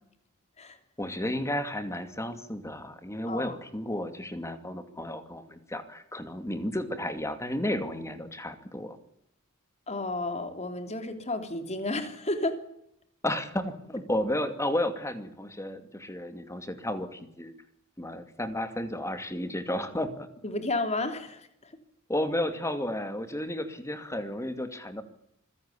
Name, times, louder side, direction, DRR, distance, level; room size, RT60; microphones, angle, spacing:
voice 1, 1.0-9.0 13.2-17.5 18.0-20.3 22.1-25.0, left 1 dB, 15° left, 9 dB, 2.4 m, -32 dB
voice 2, 9.9-12.6 20.4-21.7, left 2 dB, 30° left, 8 dB, 3.3 m, -32 dB
25.5 x 16.0 x 8.6 m, 0.75 s
head